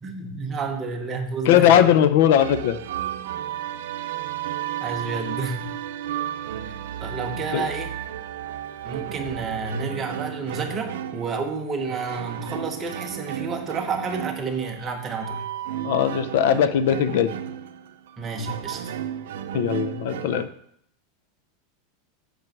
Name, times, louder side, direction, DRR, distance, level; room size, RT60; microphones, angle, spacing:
voice 1, 0.0-1.8 4.8-5.7 6.6-7.9 8.8-15.4 18.2-18.8, right 4 dB, 20° right, 3 dB, 1.2 m, -30 dB
voice 2, 1.5-2.8 7.5-7.7 15.8-17.3 19.5-20.5, left 10 dB, 60° left, 12 dB, 0.6 m, -19 dB
sound 1, 2.4-20.5, right 11 dB, 90° right, 0.6 m, -33 dB
7.8 x 6.6 x 6.0 m, 0.70 s
supercardioid pair, 165°, 0 cm